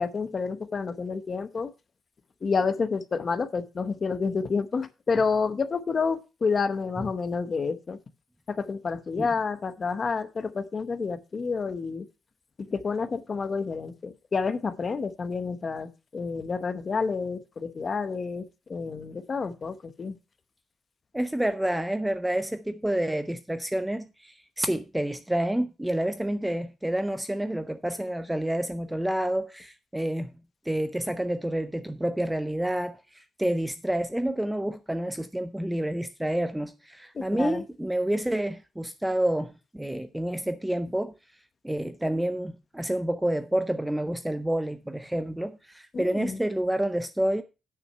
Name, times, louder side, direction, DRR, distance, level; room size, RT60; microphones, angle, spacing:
voice 1, 0.0-1.7 2.4-8.0 8.5-12.0 12.6-18.4 18.7-20.1 37.1-37.6 45.9-46.4, left 5 dB, 30° left, 0.8 m, -29 dB
voice 2, 21.1-30.3 30.7-41.1 41.6-47.4, right 1 dB, 5° right, 0.5 m, -29 dB
9.5 x 6.0 x 5.4 m
cardioid pair, 170°, 0 cm